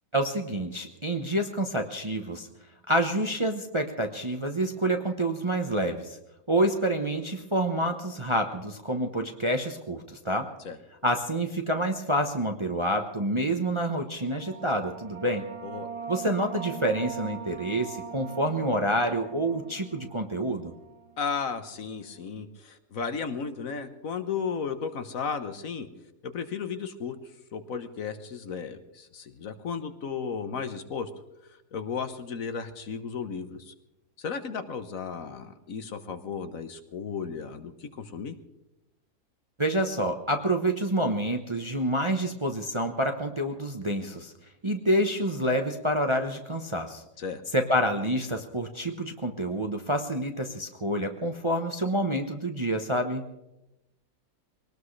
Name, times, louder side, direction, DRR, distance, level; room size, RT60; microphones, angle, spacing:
voice 1, 0.1-2.5 2.9-6.2 6.5-10.5 11.0-15.5 16.1-20.7 39.6-44.3 44.6-47.0 47.5-53.2, right 1 dB, 25° right, 5 dB, 0.8 m, -28 dB
sound 1, 14.2-21.4, right 7 dB, 90° right, 1.7 m, -42 dB
voice 2, 21.2-25.9 26.2-27.1 27.5-31.1 31.7-33.7 34.2-38.4 47.2-47.4, left 6 dB, 60° left, 9 dB, 1.4 m, -34 dB
22.5 x 18.5 x 3.2 m, 0.93 s
omnidirectional pair, 1.7 m